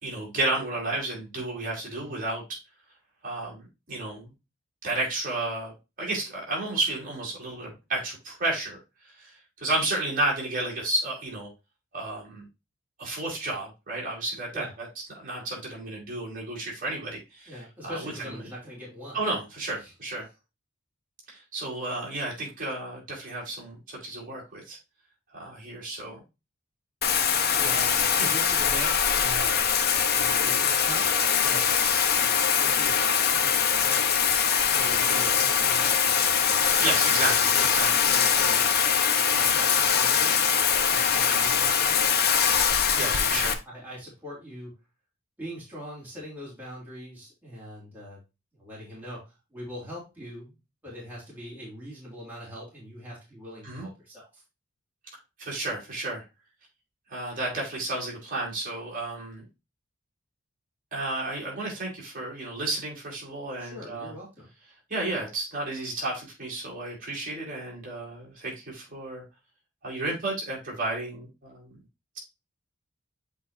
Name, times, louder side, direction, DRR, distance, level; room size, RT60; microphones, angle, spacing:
voice 1, 0.0-2.6 3.2-4.3 4.8-5.7 6.0-8.8 9.2-11.5 11.9-12.4 13.0-14.9 15.1-17.6 17.8-18.1 19.1-20.3 21.3-24.8 25.3-26.2 27.4-28.3 36.8-37.9 43.0-43.5 53.6-53.9 55.4-56.2 57.1-59.4 60.9-64.1 64.9-69.2 69.8-71.7, right 2 dB, 40° right, -4 dB, 3.8 m, -32 dB
voice 2, 17.5-19.2 19.8-19.9 20.2-20.3 27.5-29.7 30.1-31.1 31.4-31.7 32.2-34.0 34.7-36.3 37.5-38.8 39.3-40.4 40.9-42.2 42.9-44.7 45.4-48.2 48.6-50.6 50.8-54.3 63.6-64.5, equal, 10° right, -6 dB, 3.2 m, -42 dB
Bathtub (filling or washing), 27.0-43.5, left 7 dB, 50° left, 0.8 m, -23 dB
8.0 x 4.9 x 2.7 m, 0.26 s
head